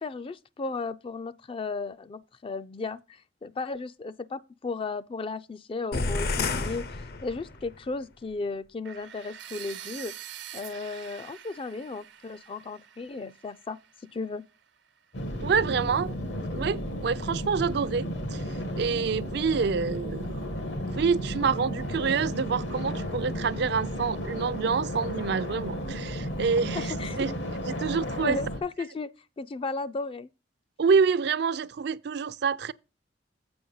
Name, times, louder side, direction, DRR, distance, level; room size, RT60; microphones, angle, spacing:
voice 1, 0.0-6.8 7.2-10.1 10.5-13.8 14.1-14.4 26.7-27.3 28.2-29.1 29.4-30.3, left 3 dB, 30° left, 0.3 m, -35 dB
sound 1, 5.9-7.8, left 3 dB, 55° left, 0.7 m, -30 dB
sound 2, 8.8-14.8, right 10 dB, 85° right, 1.0 m, -45 dB
sound 3, 15.1-28.6, equal, 80° left, 1.5 m, -33 dB
voice 2, 15.4-16.1 16.5-18.4 18.8-20.4 20.9-27.3 27.7-28.4 30.8-32.7, right 5 dB, 65° right, 0.4 m, -27 dB
7.8 x 5.0 x 5.5 m
head